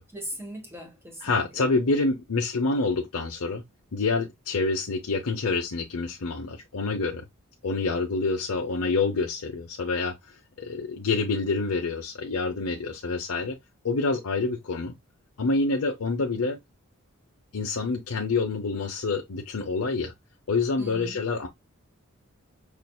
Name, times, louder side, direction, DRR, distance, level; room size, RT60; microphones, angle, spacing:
voice 1, 0.1-1.7 20.8-21.2, right 1 dB, 10° right, 1.3 m, -39 dB
voice 2, 1.2-3.6 3.9-7.2 7.6-10.1 10.6-13.6 13.8-14.9 15.4-16.6 17.5-20.1 20.5-21.5, left 3 dB, 85° left, 0.7 m, -27 dB
5.7 x 2.6 x 2.3 m
head